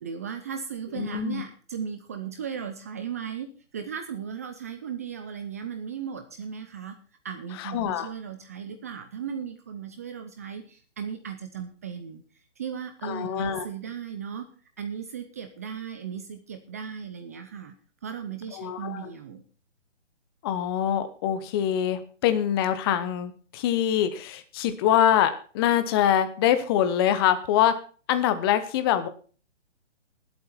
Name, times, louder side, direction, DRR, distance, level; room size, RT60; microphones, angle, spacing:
voice 1, 0.0-7.0 7.2-12.2 12.6-14.5 14.8-17.8 18.0-19.4, right 7 dB, 15° right, 7 dB, 0.5 m, -36 dB
voice 2, 0.9-1.4 7.6-8.1 13.0-13.6 18.6-19.1 20.4-27.7 28.1-29.1, left 10 dB, 20° left, 11 dB, 0.9 m, -24 dB
19.5 x 8.0 x 4.3 m, 0.39 s
hypercardioid pair, 145°, 36 cm